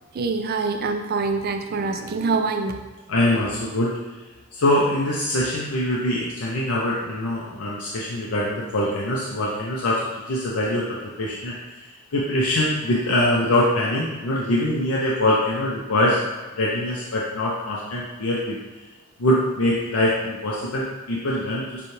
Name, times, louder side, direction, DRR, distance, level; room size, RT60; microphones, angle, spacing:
voice 1, 0.1-2.8, right 4 dB, 45° right, 6 dB, 0.4 m, -25 dB
voice 2, 3.1-4.0 4.5-16.2 16.5-18.6 19.2-21.9, left 1 dB, 80° left, -4 dB, 0.6 m, -23 dB
6.8 x 2.3 x 3.2 m, 1.2 s
head